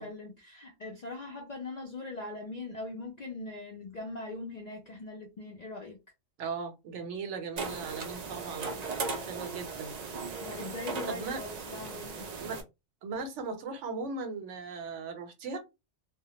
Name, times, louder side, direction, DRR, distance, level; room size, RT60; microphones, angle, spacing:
voice 1, 0.0-6.0 10.4-12.3, left 2 dB, 60° left, 0.4 m, -41 dB
voice 2, 6.4-8.7 9.2-9.9 11.1-11.4 12.4-12.6 13.0-15.6, right 4 dB, 80° right, 0.9 m, -38 dB
sound 1, 7.6-12.6, right 4 dB, 65° right, 0.4 m, -37 dB
2.1 x 2.1 x 2.8 m
omnidirectional pair, 1.2 m